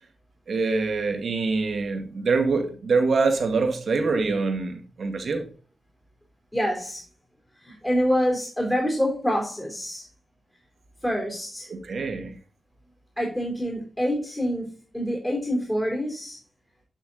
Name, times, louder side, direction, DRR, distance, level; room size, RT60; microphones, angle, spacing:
voice 1, 0.5-5.5 11.7-12.4, right 4 dB, 70° right, 2.0 m, -25 dB
voice 2, 6.5-7.0 7.6-10.1 11.0-11.7 13.2-14.7 14.9-16.4, equal, 10° left, 3.8 m, -26 dB
10.5 x 6.1 x 4.0 m
wide cardioid pair, 85°, 0 cm